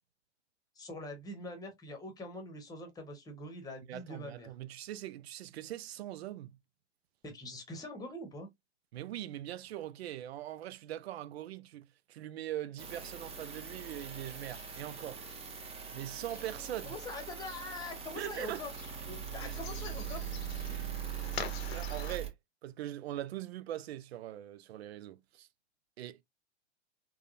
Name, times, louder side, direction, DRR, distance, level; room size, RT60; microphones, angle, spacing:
voice 1, 0.8-4.5 7.2-8.5 16.9-18.7 19.0-20.2, left 2 dB, 10° left, 0.9 m, -44 dB
voice 2, 3.9-6.6 8.9-15.2 15.9-17.0 18.2-18.7 19.4-19.5 20.1-20.2 20.7-21.0 21.7-22.3 22.6-25.5 26.0-26.2, right 12 dB, 60° right, 0.5 m, -42 dB
sound 1, 12.8-22.3, right 8 dB, 15° right, 0.8 m, -41 dB
sound 2, 14.0-22.2, left 8 dB, 60° left, 0.8 m, -49 dB
3.5 x 2.2 x 2.5 m
hypercardioid pair, 105°, 35 cm